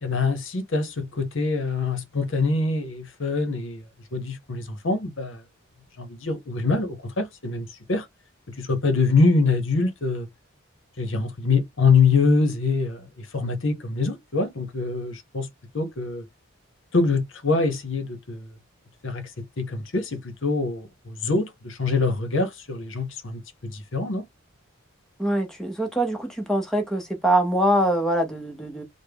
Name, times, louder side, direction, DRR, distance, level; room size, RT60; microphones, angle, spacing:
voice 1, 0.0-3.8 4.1-5.4 6.0-8.1 8.6-10.3 11.0-15.5 15.7-16.2 16.9-18.5 19.0-19.3 19.6-24.2, left 4 dB, 60° left, 0.8 m, -24 dB
voice 2, 25.2-28.8, right 1 dB, ahead, 0.7 m, -23 dB
3.4 x 2.1 x 3.4 m
head